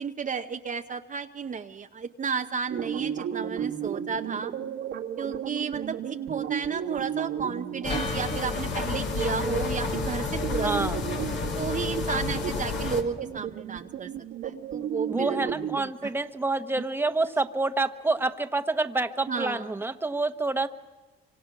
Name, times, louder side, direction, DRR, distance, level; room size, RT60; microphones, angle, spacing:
voice 1, 0.0-4.5 5.2-10.7 11.6-14.1 14.4-16.1 19.3-19.7, right 6 dB, 40° right, 6 dB, 0.8 m, -33 dB
sound 1, 2.7-15.8, right 9 dB, 90° right, 2.0 m, -34 dB
sound 2, 7.8-13.0, left 3 dB, 65° left, 2.7 m, -30 dB
voice 2, 10.6-11.0 15.1-20.7, right 3 dB, 10° right, 8 dB, 1.1 m, -27 dB
sound 3, 15.9-16.0, left 3 dB, 35° left, 3.6 m, -46 dB
25.5 x 25.5 x 6.0 m, 1.3 s
cardioid pair, 90°, 20 cm